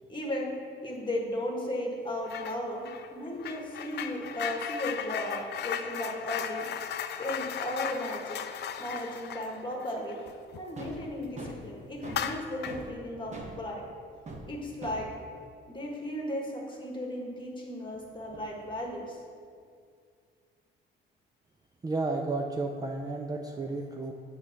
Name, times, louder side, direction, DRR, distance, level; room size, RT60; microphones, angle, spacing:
voice 1, 0.1-0.5 0.8-2.9 3.1-6.7 7.2-8.4 8.8-10.2 10.6-13.8 14.5-15.1 15.7-19.2, left 1 dB, 25° left, -1 dB, 1.5 m, -35 dB
sound 1, 2.3-2.6 2.9-11.0 11.4-11.5 12.0-12.9, left 9 dB, 60° left, 0.4 m, -37 dB
sound 2, 10.8-11.0 11.4-12.3 12.6-12.9 13.3-13.6 14.3-14.5 14.8-15.0 17.9-18.7, right 2 dB, 35° right, 1.1 m, -42 dB
voice 2, 21.8-24.1, right 3 dB, 20° right, 1 dB, 0.4 m, -32 dB
7.1 x 3.3 x 5.7 m, 2.2 s
cardioid pair, 90°, 20 cm